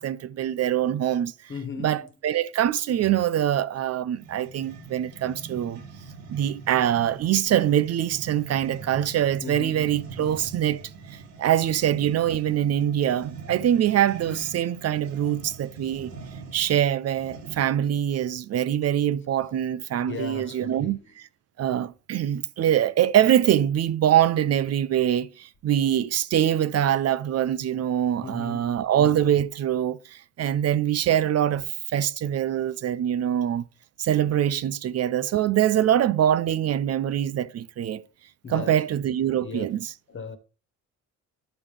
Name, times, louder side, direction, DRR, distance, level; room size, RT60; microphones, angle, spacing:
voice 1, 0.0-1.3 1.8-5.8 6.3-10.8 11.4-16.1 16.5-21.3 21.6-31.6 31.9-33.6 34.0-38.0 38.5-39.9, right 11 dB, 55° right, 0.5 m, -24 dB
voice 2, 1.5-1.9 9.4-9.9 20.1-21.0 28.2-28.8 38.4-38.7 39.3-39.6 40.1-40.4, left 5 dB, 40° left, 1.4 m, -36 dB
sound 1, 4.2-17.9, right 4 dB, 85° right, 2.0 m, -43 dB
11.0 x 5.4 x 3.4 m
cardioid pair, 90°, 30 cm